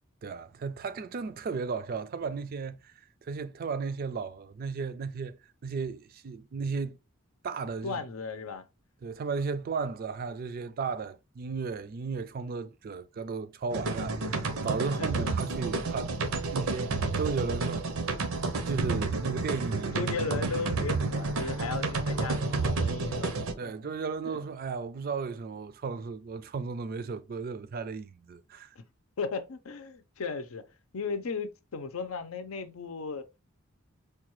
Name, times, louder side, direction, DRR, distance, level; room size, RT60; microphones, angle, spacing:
voice 1, 0.2-2.9 3.2-7.0 7.4-8.0 9.0-16.2 16.5-17.8 18.5-20.1 23.6-28.8, right 5 dB, 45° right, 0.3 m, -35 dB
voice 2, 7.8-8.7 15.0-15.3 19.9-23.7 24.2-24.4 29.2-30.7 30.9-33.2, left 4 dB, 90° left, 0.6 m, -36 dB
sound 1, 13.7-23.5, right 3 dB, 85° right, 0.7 m, -30 dB
4.7 x 2.3 x 3.0 m
head